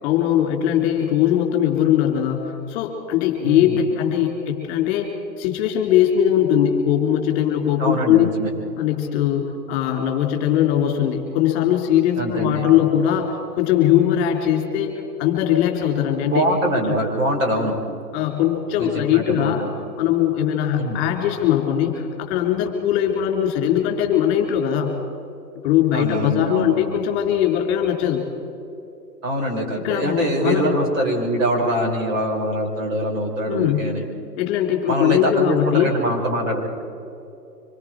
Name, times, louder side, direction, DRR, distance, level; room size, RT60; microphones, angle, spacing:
voice 1, 0.0-8.3 8.8-14.9 15.2-16.4 16.9-17.0 18.1-19.6 20.0-25.0 25.6-28.2 29.8-30.7 33.5-33.8 34.4-35.9, left 10 dB, 30° left, 2 dB, 3.3 m, -20 dB
voice 2, 3.4-3.8 7.8-8.5 12.2-12.7 16.2-17.8 18.8-19.7 20.8-21.0 25.9-26.7 29.2-34.1 34.9-36.7, right 1 dB, 50° right, 0 dB, 5.7 m, -23 dB
26.0 x 23.5 x 4.8 m, 2.9 s
hypercardioid pair, 135°, 50 cm